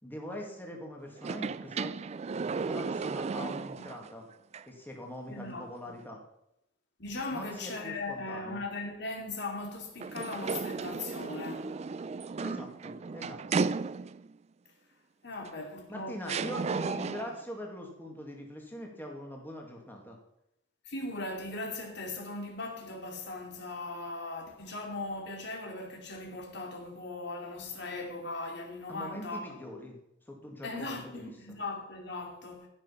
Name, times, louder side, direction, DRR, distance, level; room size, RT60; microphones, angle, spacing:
voice 1, 0.0-1.9 2.4-4.3 4.6-6.2 7.3-8.6 12.4-13.6 15.9-20.2 28.9-30.0 30.3-31.3, equal, 10° left, 2.2 m, -42 dB
sound 1, 1.2-4.1 4.5-4.6 10.0-14.3 15.5-15.6 16.3-17.4, right 4 dB, 35° right, 0.3 m, -34 dB
voice 2, 5.3-6.0 7.0-11.7 15.2-16.4 20.9-29.5 30.6-32.7, left 2 dB, 55° left, 2.7 m, -39 dB
15.0 x 6.4 x 5.7 m
head